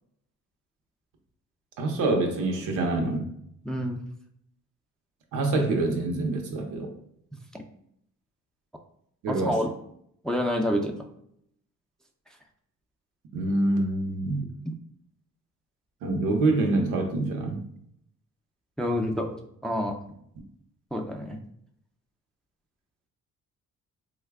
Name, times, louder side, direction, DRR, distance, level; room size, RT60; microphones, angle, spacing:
voice 1, 1.8-3.3 5.3-6.9 9.2-9.6 13.3-14.5 16.0-17.7, right 2 dB, 85° right, 3 dB, 0.7 m, -26 dB
voice 2, 3.7-4.0 7.5-7.6 9.3-9.7 10.2-11.1 14.7-14.8 18.8-20.0 20.9-21.4, equal, ahead, 3 dB, 0.4 m, -28 dB
3.1 x 2.2 x 3.4 m, 0.71 s
cardioid pair, 90°, 30 cm